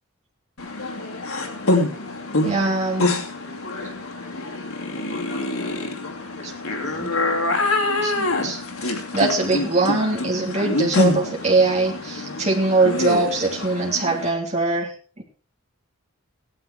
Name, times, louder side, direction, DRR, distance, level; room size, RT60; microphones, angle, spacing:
sound 1, 0.6-14.3, left 2 dB, 85° left, 2.6 m, -26 dB
voice 1, 2.4-3.0 6.4-6.5 6.8-7.2 8.0-14.9 15.2-15.3, right 3 dB, 30° right, -1 dB, 3.3 m, -22 dB
16.0 x 10.0 x 4.9 m, 0.39 s
head